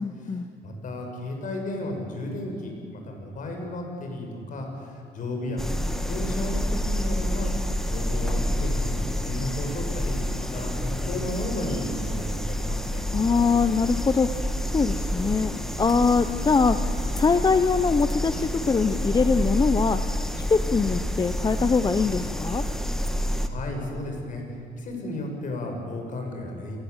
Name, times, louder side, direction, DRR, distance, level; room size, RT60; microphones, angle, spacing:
voice 1, 0.0-0.5 13.1-16.8 17.1-20.0 20.5-22.6, left 5 dB, 25° left, 10 dB, 0.8 m, -23 dB
voice 2, 0.6-5.8 6.1-7.5 7.9-9.0 9.2-13.0 23.4-24.4 24.8-26.8, left 1 dB, 50° left, 3 dB, 6.7 m, -33 dB
sound 1, 5.6-23.5, equal, ahead, 1.8 m, -28 dB
29.0 x 19.0 x 8.2 m, 2.5 s
cardioid pair, 110°, 17 cm